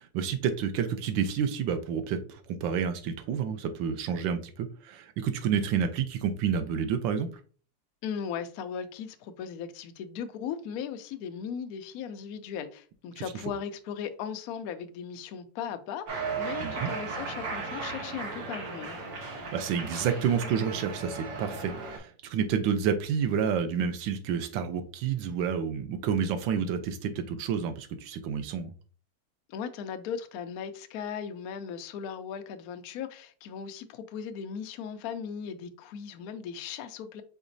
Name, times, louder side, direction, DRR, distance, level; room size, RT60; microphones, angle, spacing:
voice 1, 0.0-7.3 13.2-13.3 16.6-16.9 19.3-28.7, right 7 dB, 85° right, 1.4 m, -29 dB
voice 2, 8.0-19.0 29.5-37.2, left 7 dB, 75° left, 0.9 m, -37 dB
Cheering, 16.1-22.0, right 4 dB, 60° right, 1.4 m, -36 dB
5.1 x 3.9 x 2.6 m
omnidirectional pair, 2.0 m